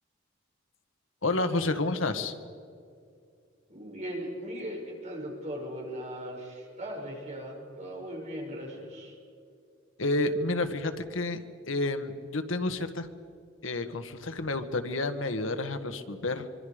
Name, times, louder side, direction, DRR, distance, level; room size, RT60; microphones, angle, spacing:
voice 1, 1.2-2.3 10.0-11.4 11.7-13.1 13.6-16.5, left 2 dB, 85° left, 9 dB, 1.5 m, -30 dB
voice 2, 3.7-9.1, equal, 35° right, -1 dB, 6.4 m, -38 dB
25.5 x 24.5 x 5.1 m, 2.4 s
head